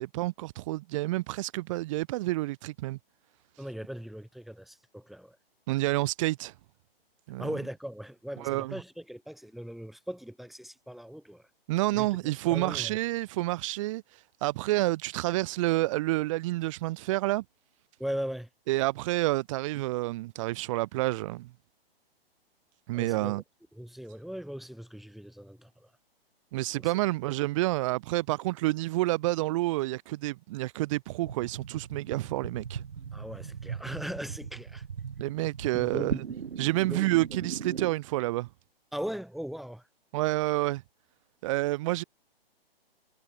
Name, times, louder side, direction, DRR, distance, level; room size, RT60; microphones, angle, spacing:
voice 1, 0.0-3.0 5.7-6.5 7.3-7.5 8.4-8.7 11.7-14.0 14.4-17.4 18.7-21.5 22.9-23.4 26.5-32.8 35.2-36.1 36.6-38.5 40.1-40.8 41.4-42.0, right 18 dB, 35° right, 1.2 m, -29 dB
voice 2, 3.6-5.4 7.4-11.5 11.9-12.1 12.5-13.0 18.0-18.5 22.9-23.4 23.7-25.9 26.7-26.9 33.1-34.8 35.7-36.4 36.9-37.4 38.9-39.8, equal, ahead, 1.0 m, -39 dB
sound 1, 31.2-37.9, right 7 dB, 80° right, 1.4 m, -38 dB
hypercardioid pair, 140°, 30 cm